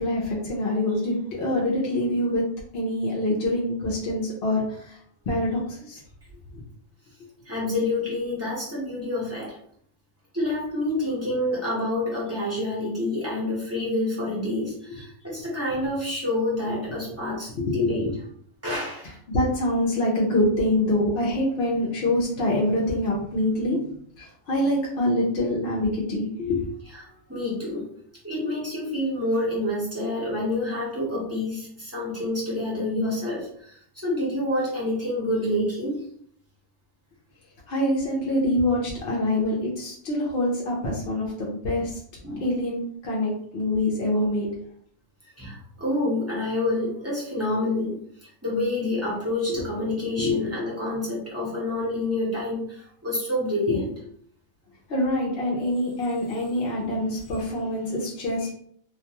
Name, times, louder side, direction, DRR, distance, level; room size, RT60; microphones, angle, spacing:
voice 1, 0.0-2.5 2.7-5.0 5.3-6.0 17.6-18.1 19.3-23.8 24.2-26.6 37.7-42.0 42.4-44.5 49.5-49.6 50.2-50.4 53.7-53.8 54.9-58.5, left 1 dB, 60° left, -3 dB, 0.7 m, -25 dB
voice 2, 7.4-9.6 10.3-18.1 18.6-19.2 26.9-27.9 28.2-36.1 42.2-42.5 45.4-53.9, left 1 dB, 15° right, -6 dB, 0.7 m, -28 dB
2.5 x 2.2 x 2.8 m, 0.62 s
omnidirectional pair, 1.5 m